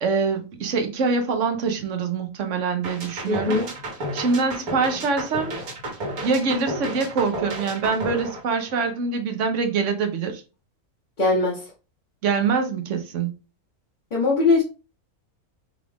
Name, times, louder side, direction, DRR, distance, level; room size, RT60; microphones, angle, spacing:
voice 1, 0.0-3.6 4.1-5.6 6.2-10.4 12.2-13.3, right 4 dB, 60° right, 1.0 m, -24 dB
sound 1, 2.8-9.0, right 1 dB, 75° right, 1.7 m, -32 dB
voice 2, 3.3-3.7 11.2-11.6 14.1-14.6, left 3 dB, 35° left, 1.1 m, -20 dB
4.8 x 2.5 x 3.4 m
omnidirectional pair, 1.5 m